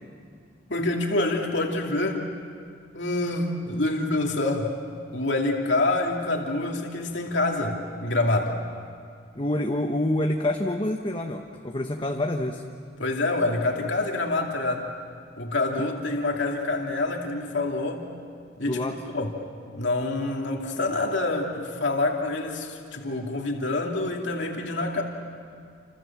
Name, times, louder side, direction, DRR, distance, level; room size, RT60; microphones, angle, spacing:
voice 1, 0.7-2.3 2.9-4.7 5.1-8.6 13.0-14.9 15.4-18.1 18.6-19.3 19.7-25.0, left 2 dB, 60° left, 1 dB, 2.7 m, -26 dB
voice 2, 9.3-12.6 15.8-15.9 18.7-19.0, left 1 dB, 25° left, 3 dB, 1.0 m, -27 dB
30.0 x 27.0 x 7.4 m, 2.2 s
head